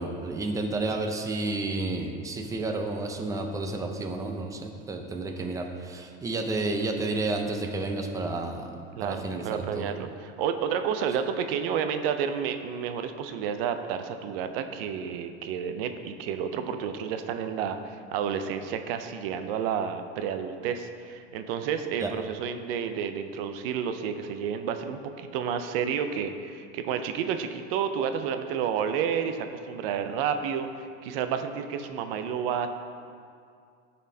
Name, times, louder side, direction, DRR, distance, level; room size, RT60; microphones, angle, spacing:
voice 1, 0.0-8.7 9.0-9.9 22.0-22.1, right 2 dB, 10° right, 3 dB, 0.5 m, -31 dB
voice 2, 9.0-32.7, right 7 dB, 70° right, 8 dB, 0.6 m, -30 dB
12.5 x 4.2 x 2.8 m, 2.3 s
supercardioid pair, 140°, 30 cm